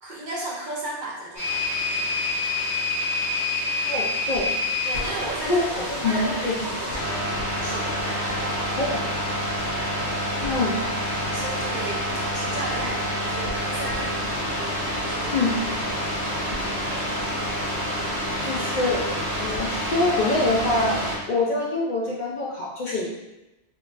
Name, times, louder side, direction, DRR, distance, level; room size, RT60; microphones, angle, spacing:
voice 1, 0.0-1.6 1.9-2.1 4.8-7.3 7.6-8.9 11.2-14.1 14.5-16.0, right 2 dB, 55° right, -4 dB, 0.6 m, -35 dB
sound 1, 1.4-21.2, left 1 dB, 85° left, 1.3 m, -27 dB
voice 2, 3.8-4.5 5.5-6.7 8.8-9.0 10.4-10.8 15.3-15.6 18.4-19.0 19.3-20.9 21.3-23.1, left 2 dB, 55° left, -4 dB, 0.6 m, -25 dB
3.7 x 2.3 x 2.4 m, 0.98 s
omnidirectional pair, 1.1 m